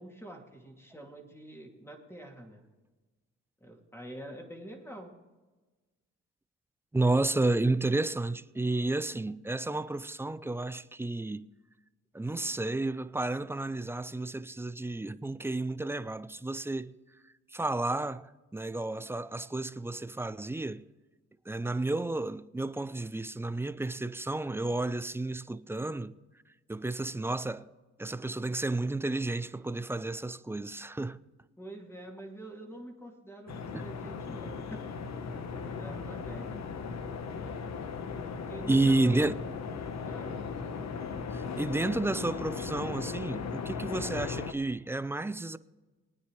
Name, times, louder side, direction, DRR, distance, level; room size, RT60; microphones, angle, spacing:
voice 1, 0.0-2.6 3.6-5.1 31.6-36.6 38.5-39.2 40.1-40.4, right 1 dB, 10° left, 2.6 m, -46 dB
voice 2, 6.9-11.5 12.1-17.0 17.5-20.9 21.5-26.2 26.7-27.7 28.0-31.2 33.7-33.8 38.7-39.4 41.3-45.6, right 2 dB, 10° right, 0.4 m, -31 dB
sound 1, 33.5-44.5, left 5 dB, 60° left, 1.2 m, -37 dB
21.5 x 9.7 x 3.2 m
cardioid pair, 90°, 30 cm